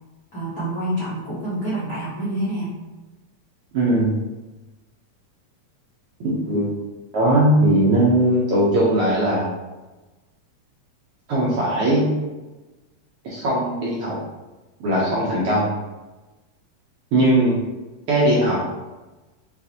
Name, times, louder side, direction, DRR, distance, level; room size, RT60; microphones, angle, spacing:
voice 1, 0.3-2.7, right 1 dB, 65° left, -9 dB, 0.9 m, -27 dB
voice 2, 3.7-4.1 6.2-6.7 7.1-9.5 11.3-12.1 13.2-14.2 14.8-15.7 17.1-17.6 18.1-18.9, right 1 dB, 70° right, -7 dB, 1.4 m, -19 dB
6.5 x 2.6 x 2.8 m, 1.1 s
omnidirectional pair, 3.4 m